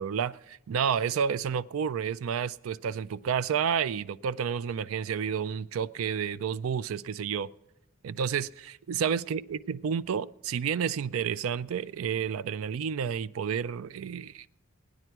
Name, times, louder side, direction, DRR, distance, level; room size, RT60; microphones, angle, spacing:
voice 1, 0.0-7.5 8.0-14.5, right 7 dB, 80° right, 0.4 m, -30 dB
17.5 x 9.8 x 4.6 m
head